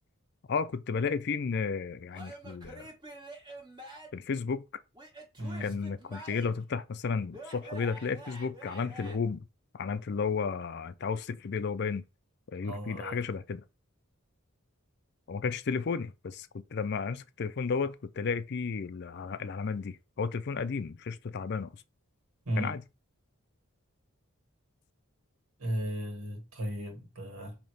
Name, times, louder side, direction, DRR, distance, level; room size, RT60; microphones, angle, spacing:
voice 1, 0.5-2.9 4.1-4.6 5.6-9.5 9.7-12.0 12.5-13.6 15.3-21.8 22.6-22.8, left 5 dB, 50° left, 0.4 m, -33 dB
Male speech man speaking / Yell / Laughter, 2.1-4.3 4.9-6.7 7.3-9.2, right 2 dB, 20° right, 1.1 m, -47 dB
voice 2, 5.4-5.7 12.6-13.2 22.5-22.8 25.6-27.6, equal, 85° right, 1.9 m, -35 dB
5.5 x 2.9 x 3.3 m
head